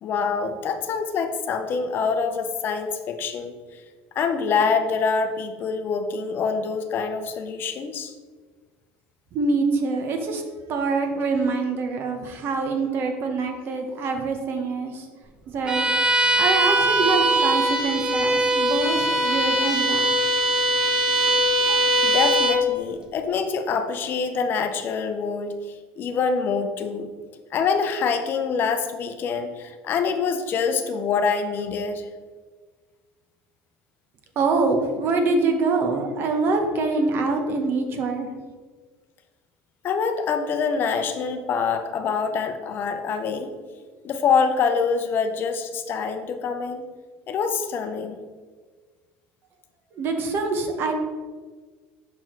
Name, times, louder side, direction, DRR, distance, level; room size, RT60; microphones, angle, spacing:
voice 1, 0.0-3.5 4.1-8.1 21.7-27.1 27.5-32.1 39.8-43.5 44.0-46.8 47.3-48.2, left 5 dB, 40° left, 7 dB, 0.6 m, -25 dB
voice 2, 9.3-10.4 10.7-15.1 15.5-15.9 16.4-20.2 34.4-38.3 50.0-50.9, right 3 dB, 45° right, 5 dB, 1.0 m, -25 dB
Bowed string instrument, 15.7-22.7, right 1 dB, 15° right, 0.7 m, -21 dB
6.0 x 4.7 x 4.5 m, 1.4 s
cardioid pair, 130°, 5 cm